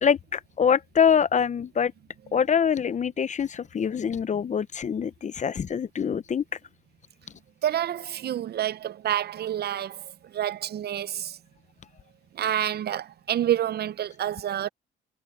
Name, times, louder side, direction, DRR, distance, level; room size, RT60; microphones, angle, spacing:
voice 1, 0.0-1.9 2.3-6.4, left 7 dB, 40° left, 0.6 m, -24 dB
voice 2, 7.6-11.4 12.3-14.7, right 11 dB, 55° right, 0.6 m, -28 dB
cardioid pair, 90°, 20 cm